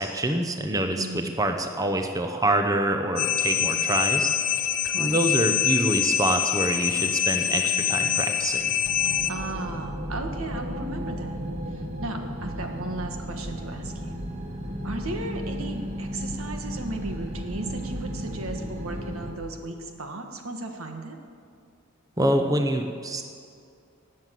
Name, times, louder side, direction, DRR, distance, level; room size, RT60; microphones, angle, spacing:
voice 1, 0.0-4.3 5.0-8.6 22.2-23.2, right 1 dB, 15° right, 5 dB, 0.7 m, -25 dB
voice 2, 1.0-1.4 4.8-5.2 9.3-11.4 11.7-14.3 14.8-21.2, right 2 dB, 80° right, 4 dB, 1.6 m, -36 dB
sound 1, 3.2-9.3, left 9 dB, 40° left, 0.8 m, -25 dB
sound 2, 8.8-19.3, equal, 30° right, 1.3 m, -34 dB
19.0 x 7.6 x 7.6 m, 2.4 s
head